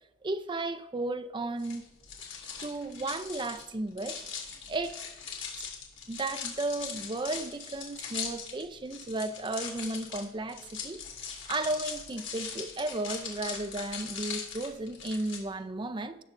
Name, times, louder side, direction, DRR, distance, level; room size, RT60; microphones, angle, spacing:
voice 1, 0.2-1.8 2.6-4.2 4.7-5.0 5.6-5.7 6.1-16.2, right 2 dB, 25° right, 0.5 m, -34 dB
sound 1, 1.6-15.4, left 6 dB, 80° left, 2.3 m, -40 dB
17.5 x 6.4 x 2.6 m
head